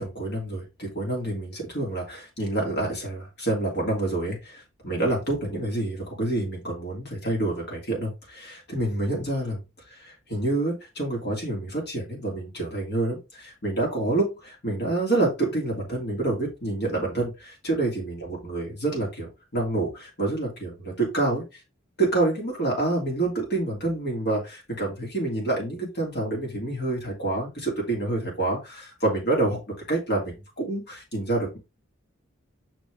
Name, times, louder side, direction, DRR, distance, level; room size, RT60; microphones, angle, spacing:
voice 1, 0.0-9.6 9.9-21.4 22.0-29.6 29.9-31.6, right 2 dB, 55° left, -2 dB, 2.9 m, -27 dB
6.1 x 4.5 x 3.5 m, 0.26 s
head